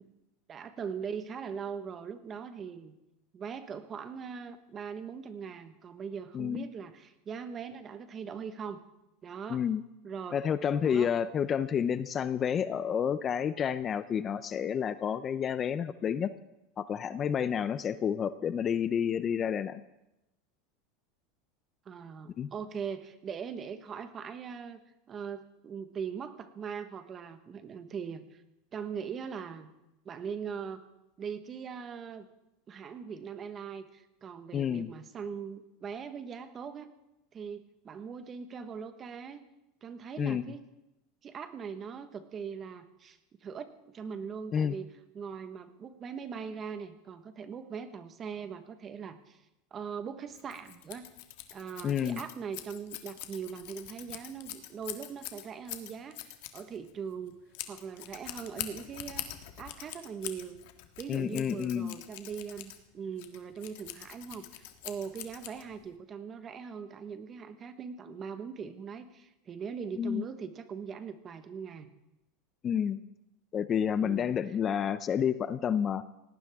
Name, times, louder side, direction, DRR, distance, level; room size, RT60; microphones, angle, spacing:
voice 1, 0.5-2.9 3.3-8.8 9.2-9.6 10.0-10.4 10.8-11.1 21.8-24.8 25.1-28.4 28.7-29.7 30.0-30.8 31.2-32.3 32.7-36.9 37.3-39.4 39.8-40.6 41.2-44.9 45.1-49.4 49.7-51.1 51.5-57.4 57.7-59.3 59.6-60.6 61.0-71.9 74.0-74.3, right 6 dB, 30° right, 10 dB, 1.3 m, -41 dB
voice 2, 6.3-6.7 9.5-9.8 10.3-16.3 16.8-19.8 22.4-22.5 34.5-34.9 40.2-40.4 44.5-44.8 51.8-52.2 61.1-61.9 70.0-70.2 72.6-73.0 73.5-76.0, left 8 dB, 30° left, 14 dB, 0.5 m, -30 dB
Scissors, 50.3-65.9, left 14 dB, 70° left, 1.6 m, -44 dB
19.0 x 18.0 x 3.6 m, 0.92 s
supercardioid pair, 135°, 0 cm